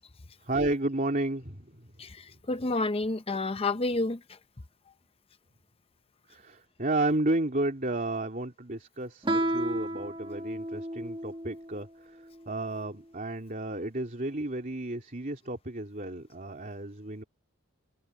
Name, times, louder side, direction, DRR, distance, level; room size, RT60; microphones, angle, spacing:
voice 1, 0.4-1.9 6.3-17.2, right 2 dB, 40° right, 3.1 m, -32 dB
voice 2, 2.0-4.2, left 2 dB, 25° left, 0.6 m, -29 dB
Guitar, 9.2-11.7, right 1 dB, 25° right, 1.8 m, -32 dB
head